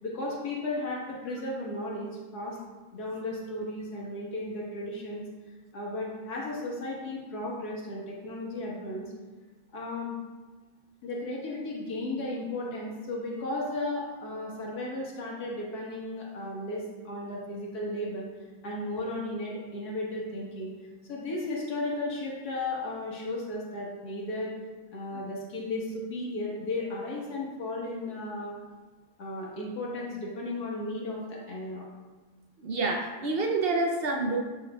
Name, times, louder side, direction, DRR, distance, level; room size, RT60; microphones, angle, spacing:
voice 1, 0.0-2.6 2.9-5.2 5.7-9.0 9.7-10.2 11.0-18.3 18.6-20.7 21.1-24.5 24.9-28.5 29.2-31.8 32.6-32.7, left 2 dB, 80° left, -4 dB, 1.8 m, -35 dB
voice 2, 32.6-34.4, right 3 dB, 60° right, 1 dB, 0.6 m, -28 dB
7.8 x 6.2 x 2.3 m, 1.3 s
omnidirectional pair, 1.6 m